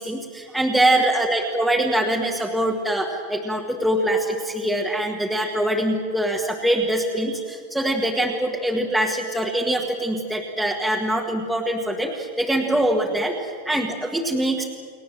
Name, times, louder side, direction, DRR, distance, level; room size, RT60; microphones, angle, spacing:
voice 1, 0.0-14.6, right 1 dB, ahead, -2 dB, 1.5 m, -23 dB
30.0 x 22.5 x 7.6 m, 2.1 s
supercardioid pair, 180°, 0 cm